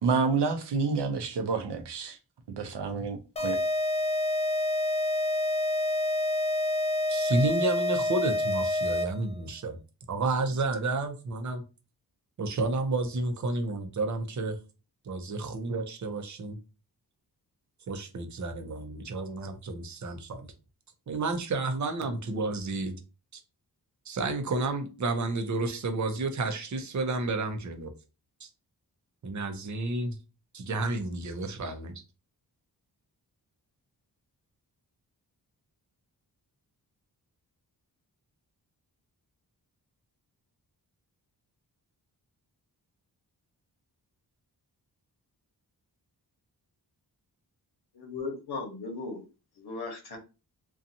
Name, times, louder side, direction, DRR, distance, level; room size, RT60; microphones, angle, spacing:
voice 1, 0.0-2.2 2.5-3.6, right 4 dB, 85° right, 0.7 m, -29 dB
sound 1, 3.4-9.3, left 1 dB, 15° left, 0.4 m, -28 dB
voice 2, 7.1-9.8 10.1-11.6 12.4-14.6 15.0-16.6 17.9-20.5 21.1-23.0 24.1-27.9 28.4-28.5 29.2-30.2 30.5-32.0, right 3 dB, 45° right, 0.6 m, -31 dB
voice 3, 48.0-49.2 49.6-50.2, left 3 dB, 70° left, 1.0 m, -37 dB
2.6 x 2.3 x 2.6 m
wide cardioid pair, 105°, 40 cm